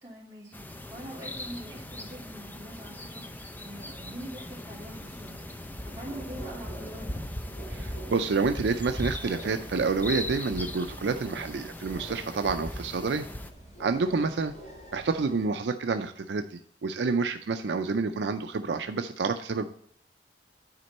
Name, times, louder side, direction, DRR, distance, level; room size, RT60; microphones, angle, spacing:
voice 1, 0.0-5.4 5.8-7.3 14.1-14.3, right 1 dB, 20° right, -6 dB, 3.1 m, -44 dB
sound 1, 0.5-13.5, left 1 dB, 10° left, 0.5 m, -39 dB
sound 2, 0.6-15.5, right 1 dB, 50° left, 2.9 m, -49 dB
voice 2, 7.7-13.3 13.8-14.5 14.9-19.6, right 4 dB, 70° right, 8 dB, 0.4 m, -28 dB
9.5 x 4.4 x 4.1 m, 0.63 s
head